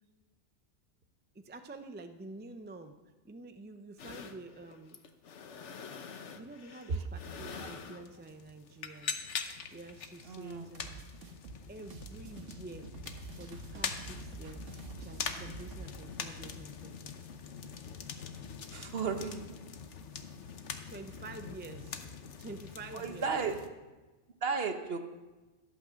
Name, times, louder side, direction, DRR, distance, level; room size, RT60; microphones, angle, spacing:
voice 1, 1.3-3.0 3.2-5.0 6.3-9.2 9.7-11.1 11.7-12.9 13.4-14.7 15.0-17.1 20.9-22.0 22.4-23.4, right 2 dB, 15° right, 7 dB, 0.4 m, -48 dB
sound 1, 4.0-23.7, left 6 dB, 75° left, 1.2 m, -44 dB
voice 2, 10.3-10.7 18.7-19.6 22.9-23.5 24.4-25.0, right 5 dB, 55° right, 6 dB, 1.2 m, -34 dB
sound 2, 10.7-15.9, right 3 dB, 85° right, 1.6 m, -47 dB
13.5 x 8.8 x 6.3 m, 1.2 s
omnidirectional pair, 1.2 m